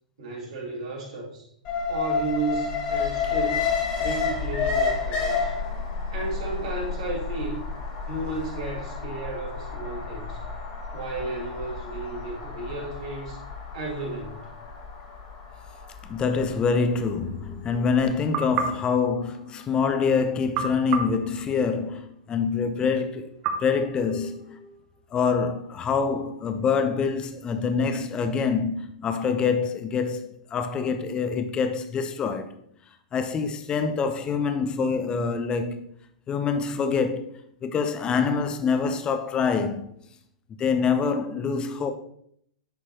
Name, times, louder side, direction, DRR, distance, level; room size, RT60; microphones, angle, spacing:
voice 1, 0.2-1.5 1.9-3.7 4.0-5.5 6.1-7.6 8.1-10.4 10.9-13.4 13.7-14.5, right 3 dB, 65° right, 2.9 m, -33 dB
Alarm, 1.6-17.8 18.1-18.2, left 5 dB, 40° left, 2.5 m, -30 dB
voice 2, 16.0-23.3 23.6-24.7 25.1-32.5 33.1-35.9 36.3-37.3 37.6-39.9 40.6-41.9, left 5 dB, 25° left, 0.8 m, -25 dB
sound 1, 18.3-19.9 20.5-22.1 23.4-24.8, right 5 dB, 40° right, 1.0 m, -33 dB
10.5 x 4.6 x 3.0 m
figure-of-eight pair, 110°, 4 cm